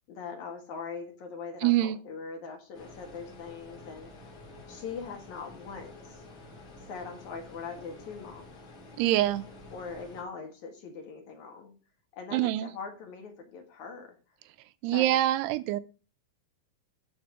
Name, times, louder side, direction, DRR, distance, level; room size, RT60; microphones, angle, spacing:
voice 1, 0.1-4.4 4.7-6.2 6.9-8.5 9.7-11.7 12.1-14.2 14.9-15.2, left 5 dB, 60° left, 2.4 m, -41 dB
voice 2, 1.6-2.0 9.0-9.5 12.3-12.7 14.8-15.8, right 14 dB, 90° right, 2.7 m, -25 dB
sound 1, 2.7-10.2, left 2 dB, 40° left, 2.0 m, -49 dB
9.4 x 4.3 x 6.4 m
omnidirectional pair, 4.7 m